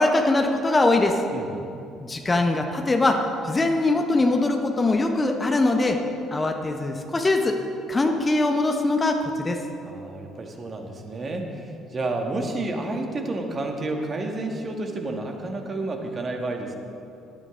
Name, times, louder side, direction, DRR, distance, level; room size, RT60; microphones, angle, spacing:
voice 1, 0.0-1.2 2.0-6.0 6.3-7.6 7.9-9.6, left 2 dB, 25° left, 4 dB, 1.3 m, -22 dB
voice 2, 1.3-1.7 9.8-16.8, right 2 dB, 35° right, 3 dB, 1.9 m, -30 dB
18.5 x 13.0 x 3.9 m, 2.6 s
figure-of-eight pair, 50°, 0 cm